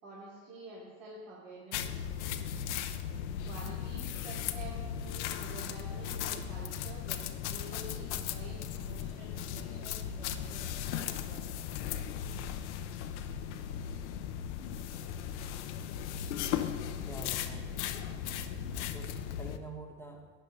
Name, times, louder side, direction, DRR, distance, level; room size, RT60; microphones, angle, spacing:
voice 1, 0.0-2.3 3.4-11.4, right 2 dB, 60° right, -8 dB, 2.9 m, -49 dB
sound 1, 1.7-19.6, left 9 dB, 75° left, 0.7 m, -37 dB
voice 2, 17.0-17.8 18.3-18.4 18.7-19.1 19.4-20.2, right 1 dB, 5° left, 1 dB, 1.2 m, -47 dB
12.0 x 8.4 x 3.4 m, 1.4 s
hypercardioid pair, 95°, 35 cm